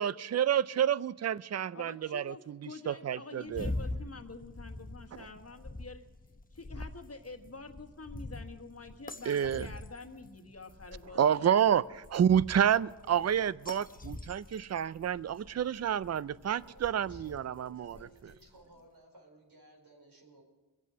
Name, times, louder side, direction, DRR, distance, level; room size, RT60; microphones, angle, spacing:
voice 1, 0.0-2.3 2.9-3.7 9.3-9.7 11.2-18.0, right 9 dB, 40° right, 19 dB, 0.4 m, -29 dB
voice 2, 1.7-6.1 6.5-11.6, left 3 dB, 35° left, 5 dB, 1.4 m, -47 dB
sound 1, 3.5-18.6, left 2 dB, 20° left, 0.8 m, -44 dB
voice 3, 16.5-20.4, right 1 dB, 70° right, 0 dB, 4.8 m, -58 dB
23.0 x 8.3 x 6.1 m, 1.2 s
wide cardioid pair, 70°, 41 cm